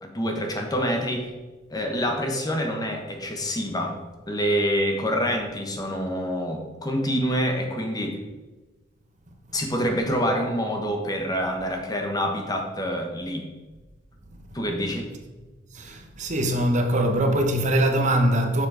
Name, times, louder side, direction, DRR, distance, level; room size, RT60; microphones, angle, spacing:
voice 1, 0.0-1.3 1.7-4.0 4.3-8.2 9.5-13.5 14.5-15.1, equal, 20° left, 1.2 m, -26 dB
voice 2, 15.7-18.7, right 1 dB, 40° right, 1.1 m, -22 dB
7.1 x 7.0 x 4.9 m
head